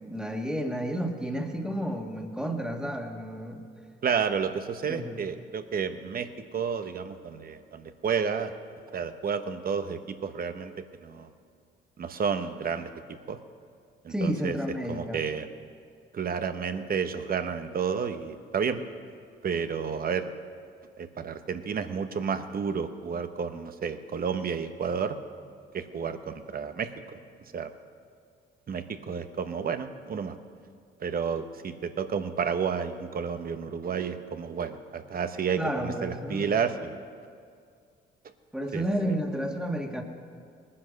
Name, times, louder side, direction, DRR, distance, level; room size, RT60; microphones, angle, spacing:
voice 1, 0.1-3.6 4.9-5.2 14.1-15.2 35.6-36.5 38.5-40.0, equal, 5° right, 3 dB, 1.7 m, -31 dB
voice 2, 4.0-8.5 8.9-10.7 11.0-11.3 12.0-13.4 14.0-14.6 14.9-15.5 16.1-18.8 19.4-20.3 21.0-25.2 25.7-27.2 27.5-27.7 28.7-30.3 31.0-37.0 38.7-39.1, right 6 dB, 45° right, 9 dB, 1.0 m, -31 dB
19.5 x 9.9 x 6.5 m, 2.2 s
cardioid pair, 90°, 20 cm